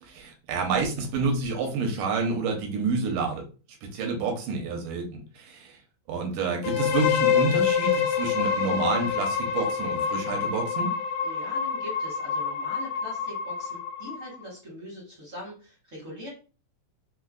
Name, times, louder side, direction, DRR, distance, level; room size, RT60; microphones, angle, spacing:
voice 1, 0.0-3.4 3.8-5.8 6.1-10.9, right 4 dB, 80° right, 2 dB, 2.4 m, -29 dB
sound 1, 6.6-14.4, left 7 dB, 85° left, 2.1 m, -27 dB
voice 2, 11.2-16.3, left 1 dB, 50° right, -5 dB, 0.9 m, -42 dB
5.4 x 2.0 x 2.4 m, 0.35 s
omnidirectional pair, 3.8 m